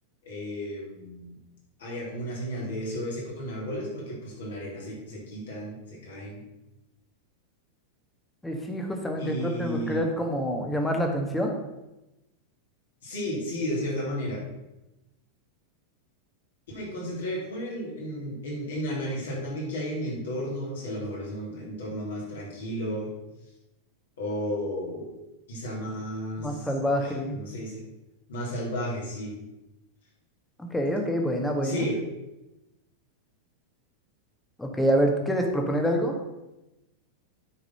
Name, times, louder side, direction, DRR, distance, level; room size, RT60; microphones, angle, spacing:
voice 1, 0.2-1.3 1.8-6.4 9.2-10.0 13.0-14.4 16.7-23.1 24.2-25.1 25.5-26.7 27.0-27.8 28.3-29.4 31.6-32.0, equal, 65° left, -5 dB, 3.7 m, -33 dB
voice 2, 8.4-11.5 26.4-27.4 30.6-31.9 34.6-36.2, equal, 5° left, 2 dB, 1.6 m, -26 dB
9.5 x 6.0 x 5.6 m, 0.97 s
figure-of-eight pair, 90°, 0 cm